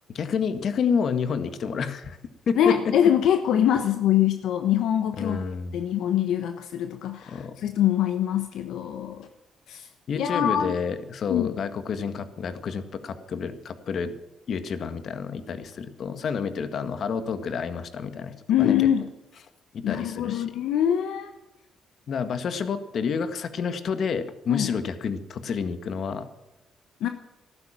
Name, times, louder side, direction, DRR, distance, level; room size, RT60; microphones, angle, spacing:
voice 1, 0.1-2.2 2.5-2.9 5.2-5.8 7.3-7.5 10.1-14.1 14.5-18.7 19.7-20.5 22.1-26.3, left 6 dB, 60° left, 10 dB, 1.7 m, -29 dB
voice 2, 2.6-5.4 5.7-9.3 9.7-9.9 10.2-10.7 11.3-11.5 18.5-19.1 19.8-21.3 24.5-24.7 27.0-27.1, left 10 dB, 80° left, 7 dB, 1.1 m, -24 dB
15.0 x 12.0 x 7.5 m, 0.98 s
cardioid pair, 90°, 0 cm